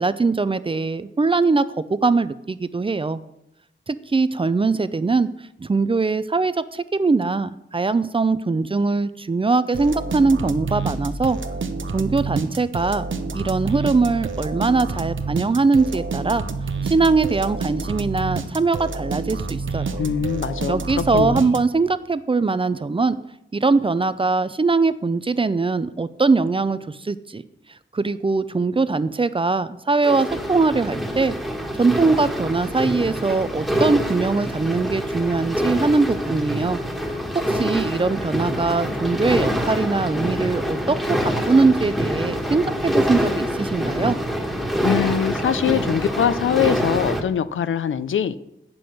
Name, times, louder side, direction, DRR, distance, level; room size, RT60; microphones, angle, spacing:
voice 1, 0.0-1.6 1.9-3.2 3.9-5.3 5.6-11.4 11.9-13.1 13.3-16.4 16.9-20.0 20.7-23.2 23.5-27.4 27.9-31.3 31.8-36.8 37.1-37.2 37.5-44.2, right 3 dB, 25° right, 15 dB, 0.4 m, -21 dB
sound 1, 9.7-22.0, right 4 dB, 80° right, 0.8 m, -28 dB
voice 2, 20.0-21.6 44.8-48.4, left 8 dB, 85° left, 14 dB, 0.5 m, -23 dB
sound 2, 30.0-47.2, equal, ahead, 1.3 m, -25 dB
8.4 x 6.1 x 6.3 m, 0.82 s
wide cardioid pair, 80°, 20 cm